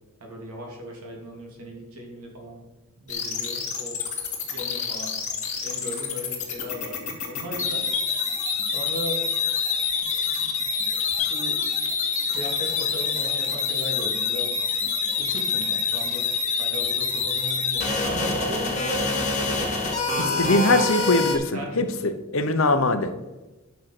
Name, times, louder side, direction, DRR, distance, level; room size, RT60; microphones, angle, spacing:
voice 1, 0.2-2.6 3.0-4.0 4.5-5.1 5.6-7.9 8.7-9.3 10.3-10.4 11.3-11.6 12.3-14.6 15.2-16.3 16.6-20.7 21.5-22.0, equal, 90° right, 0 dB, 3.1 m, -36 dB
sound 1, 3.1-21.4, left 5 dB, 35° left, 2.3 m, -26 dB
voice 2, 20.2-23.1, left 2 dB, 65° left, 9 dB, 1.0 m, -22 dB
10.5 x 6.5 x 6.0 m, 1.1 s
head